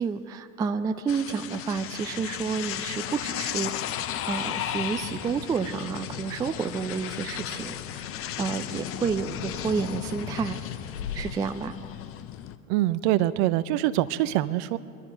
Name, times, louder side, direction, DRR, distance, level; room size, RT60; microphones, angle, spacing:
voice 1, 0.0-3.7 4.3-8.1 8.4-10.6 11.1-11.8, right 5 dB, 10° right, 8 dB, 0.3 m, -30 dB
sound 1, 1.1-12.6, left 11 dB, 30° left, 0.7 m, -35 dB
sound 2, 5.2-11.2, left 7 dB, 70° left, 1.3 m, -43 dB
voice 2, 12.7-14.8, right 14 dB, 50° right, 15 dB, 0.7 m, -24 dB
22.0 x 12.5 x 5.0 m, 2.6 s
hypercardioid pair, 90°, 42 cm